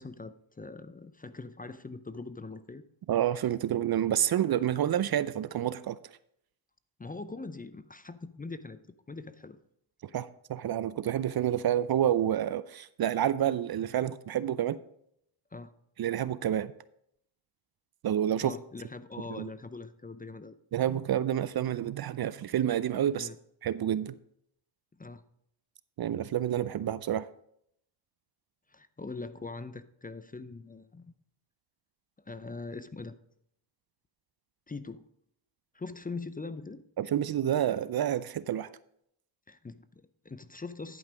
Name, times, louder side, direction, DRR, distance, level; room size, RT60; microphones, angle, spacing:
voice 1, 0.0-2.8 7.0-9.6 15.5-15.7 18.4-20.6 23.1-23.4 25.0-25.2 28.7-31.1 32.3-33.2 34.7-35.1 35.7-36.8 39.5-41.0, left 3 dB, 20° left, 13 dB, 0.6 m, -42 dB
voice 2, 3.1-6.0 10.1-14.8 16.0-16.7 18.0-18.5 19.4-19.5 20.7-23.3 23.6-24.1 26.0-27.3 37.0-38.7, right 10 dB, 50° right, 17 dB, 0.5 m, -29 dB
11.0 x 5.5 x 5.1 m, 0.72 s
cardioid pair, 60°, 48 cm